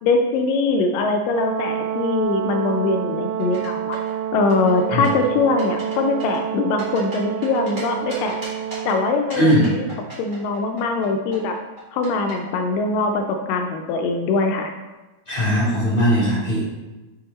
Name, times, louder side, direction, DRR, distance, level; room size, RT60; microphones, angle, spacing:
voice 1, 0.0-4.0 4.3-8.4 8.9-9.9 10.2-11.6 11.9-14.7, left 3 dB, 80° left, 4 dB, 2.1 m, -22 dB
Brass instrument, 1.3-9.3, right 11 dB, 85° right, 1.8 m, -28 dB
sound 1, 3.4-4.1 4.5-5.3 5.6-5.9 6.2-7.8 8.1-8.9 9.3-11.1 11.3-12.3, right 1 dB, 20° right, 1.8 m, -37 dB
voice 2, 9.4-9.7 15.3-16.6, equal, 20° left, -8 dB, 2.0 m, -19 dB
5.9 x 5.7 x 4.0 m, 1.1 s
omnidirectional pair, 4.0 m